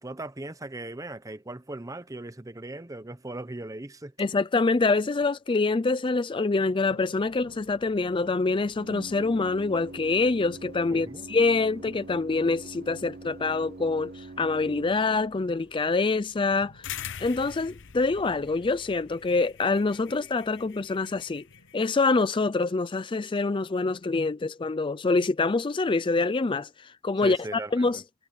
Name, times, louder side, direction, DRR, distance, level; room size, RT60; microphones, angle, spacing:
voice 1, 0.0-4.1 10.9-11.3 27.1-28.0, right 2 dB, 15° right, 0.7 m, -39 dB
voice 2, 4.2-16.9 17.2-21.4 21.7-28.0, left 3 dB, 20° left, 0.4 m, -25 dB
Thunder, 6.0-23.0, left 1 dB, 80° left, 4.8 m, -58 dB
Organ, 7.2-17.3, right 2 dB, 45° right, 0.8 m, -46 dB
sound 1, 16.8-21.7, left 9 dB, 55° left, 0.9 m, -43 dB
head